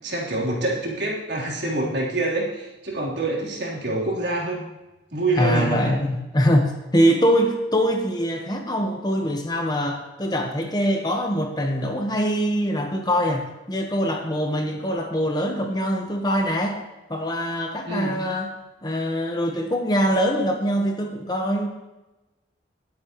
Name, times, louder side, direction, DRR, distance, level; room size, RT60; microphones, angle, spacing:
voice 1, 0.0-4.6 5.1-6.0 17.9-18.2, right 2 dB, 70° right, -4 dB, 3.7 m, -26 dB
voice 2, 5.4-16.8 17.1-18.5 18.8-21.7, equal, 20° left, 3 dB, 1.2 m, -23 dB
20.0 x 8.8 x 3.1 m, 1.0 s
head